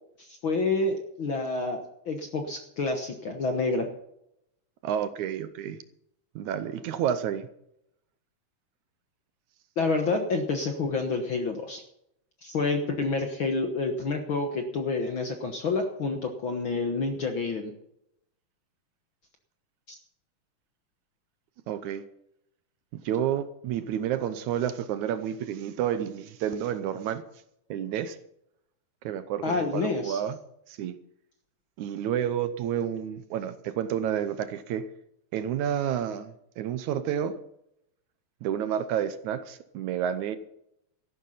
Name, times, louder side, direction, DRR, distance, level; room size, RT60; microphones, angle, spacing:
voice 1, 0.2-1.8 2.0-3.9 9.8-11.8 12.4-17.7 19.9-20.0 29.4-30.2, left 3 dB, 55° left, 5 dB, 1.5 m, -28 dB
voice 2, 4.8-5.8 6.4-7.5 21.7-22.0 22.9-27.2 27.7-28.2 29.0-30.4 30.7-31.0 31.8-34.9 35.3-37.4 38.4-40.4, right 9 dB, 75° right, 12 dB, 2.0 m, -30 dB
13.5 x 11.5 x 5.7 m, 0.78 s
omnidirectional pair, 3.8 m